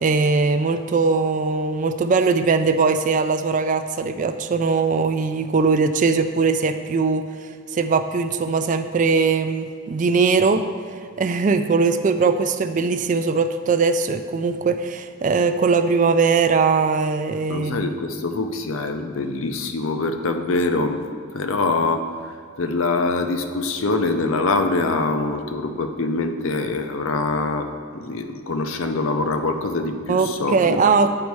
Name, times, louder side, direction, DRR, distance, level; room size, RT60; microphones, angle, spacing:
voice 1, 0.0-10.7 11.2-17.9 30.1-31.1, right 4 dB, 40° right, 9 dB, 0.3 m, -20 dB
voice 2, 17.5-21.0 21.3-22.1 22.6-27.7 27.9-30.8, left 3 dB, 75° left, 6 dB, 0.6 m, -24 dB
8.7 x 4.2 x 4.6 m, 2.2 s
head